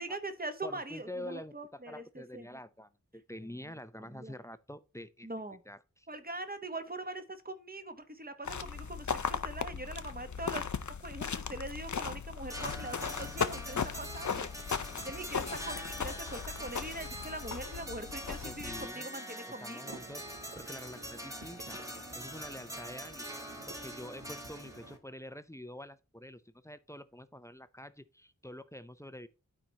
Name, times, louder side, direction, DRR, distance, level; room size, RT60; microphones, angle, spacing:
voice 1, 0.0-2.5 4.1-4.3 5.2-5.6 6.1-10.7 11.0-14.5 15.0-20.0, right 2 dB, 25° right, 1.0 m, -42 dB
voice 2, 0.6-5.3 5.7-6.1 18.2-19.1 19.5-20.2 20.5-21.8 22.1-23.4 23.7-29.3, left 1 dB, 10° left, 0.5 m, -47 dB
sound 1, 8.5-18.9, left 6 dB, 60° left, 0.6 m, -37 dB
sound 2, 12.5-25.0, equal, 10° right, 1.3 m, -44 dB
sound 3, 19.9-25.0, right 2 dB, 55° right, 2.1 m, -52 dB
12.0 x 4.4 x 2.8 m
wide cardioid pair, 55°, 33 cm